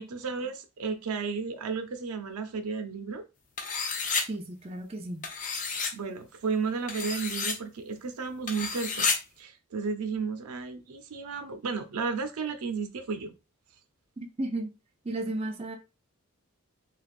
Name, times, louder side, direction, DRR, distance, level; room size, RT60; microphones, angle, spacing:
voice 1, 0.0-3.2 5.9-9.1 9.4-13.3, right 5 dB, 90° right, 0.5 m, -33 dB
sound 1, 3.6-4.2 5.2-5.9 6.9-7.5 8.5-9.2, left 4 dB, 35° left, 0.5 m, -30 dB
voice 2, 4.3-5.2 14.2-14.7 15.0-15.8, right 2 dB, 25° right, 0.4 m, -34 dB
3.3 x 2.4 x 2.4 m
head